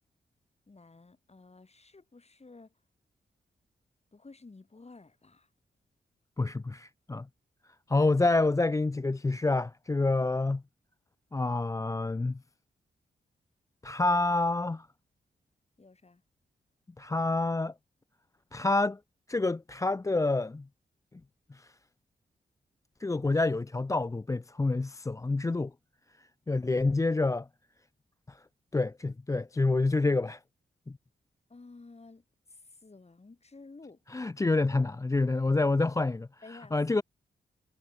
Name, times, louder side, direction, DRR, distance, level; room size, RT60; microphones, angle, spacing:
voice 1, 0.7-2.7 4.1-5.5 10.1-10.3 15.8-16.2 31.5-34.0 36.4-36.8, left 3 dB, 35° left, 4.9 m, -52 dB
voice 2, 6.4-7.3 7.9-10.6 11.3-12.4 13.8-14.9 17.0-17.7 18.5-19.0 19.3-20.6 21.5-21.7 23.0-25.7 26.5-27.5 28.3-28.4 28.7-30.4 30.9-31.0 34.1-36.3 36.7-37.0, left 3 dB, 15° left, 0.4 m, -27 dB
cardioid pair, 50°, 19 cm